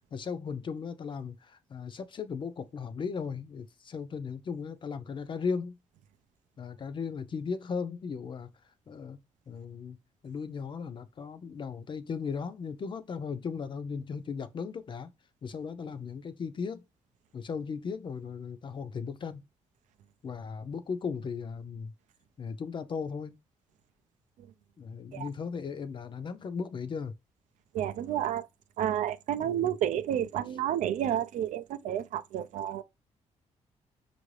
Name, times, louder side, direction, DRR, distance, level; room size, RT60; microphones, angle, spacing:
voice 1, 0.1-5.8 6.6-8.5 8.9-9.2 9.5-10.0 10.2-15.1 15.4-16.8 17.3-19.4 20.2-21.9 22.4-23.4 24.8-27.1 29.4-29.7, left 5 dB, 40° left, 0.4 m, -37 dB
voice 2, 27.7-28.5 28.8-32.8, right 10 dB, 90° right, 0.4 m, -30 dB
5.4 x 2.6 x 3.1 m
cardioid pair, 100°, 13 cm